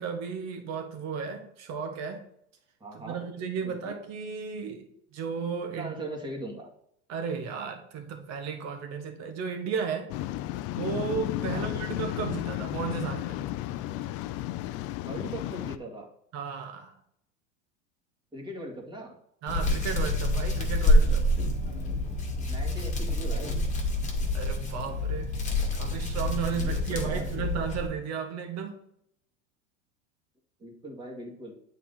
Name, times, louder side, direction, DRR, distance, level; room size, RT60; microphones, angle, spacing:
voice 1, 0.0-2.2 2.9-5.9 7.1-10.1 10.7-13.4 16.3-16.9 19.4-21.2 24.3-25.3 25.7-28.8, right 6 dB, 50° right, 5 dB, 1.6 m, -34 dB
voice 2, 2.8-3.2 3.6-4.0 5.8-6.7 11.5-11.7 15.0-16.1 18.3-19.1 21.7-21.9 22.5-23.6 26.5-26.8 27.0-27.5 30.6-31.6, right 1 dB, 15° right, -2 dB, 2.2 m, -40 dB
Waves surf, 10.1-15.8, left 15 dB, 45° left, 0.4 m, -33 dB
Hands, 19.5-27.9, left 1 dB, 20° left, 1.9 m, -27 dB
8.3 x 4.1 x 4.1 m, 0.72 s
hypercardioid pair, 100°, 35 cm